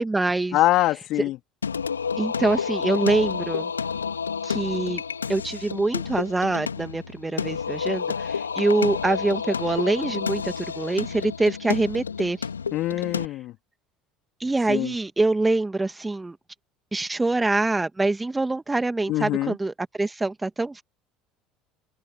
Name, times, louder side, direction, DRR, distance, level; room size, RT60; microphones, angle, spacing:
voice 1, 0.0-0.6 1.2-1.3 2.2-3.7 4.4-5.0 5.3-12.4 14.4-16.4 16.9-20.8, right 2 dB, 15° right, 2.1 m, -25 dB
voice 2, 0.5-1.4 12.7-13.5 14.7-14.9 19.1-19.6, left 16 dB, 55° left, 2.7 m, -24 dB
Singing, 1.6-13.3, left 6 dB, 85° left, 3.1 m, -30 dB
open air
figure-of-eight pair, 65°, 0 cm